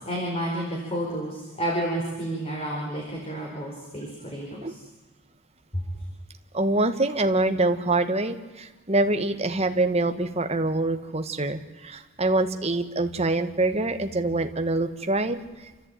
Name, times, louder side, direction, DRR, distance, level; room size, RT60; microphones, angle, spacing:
voice 1, 0.0-4.8 5.7-5.8, right 1 dB, 30° left, -2 dB, 4.9 m, -30 dB
voice 2, 6.5-15.7, right 2 dB, 30° right, 7 dB, 1.5 m, -25 dB
28.5 x 14.0 x 9.1 m, 1.2 s
head